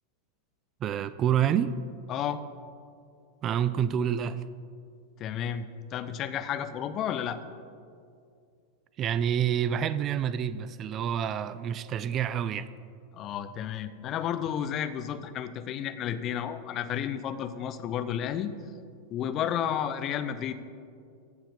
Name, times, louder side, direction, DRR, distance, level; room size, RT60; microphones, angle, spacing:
voice 1, 0.8-1.7 3.4-4.4 9.0-12.7, right 9 dB, 30° right, 15 dB, 0.3 m, -28 dB
voice 2, 2.1-2.4 5.2-7.4 13.1-18.5 19.1-20.5, left 9 dB, 35° left, 11 dB, 0.5 m, -32 dB
14.5 x 4.9 x 5.2 m, 2.3 s
figure-of-eight pair, 90°, 0 cm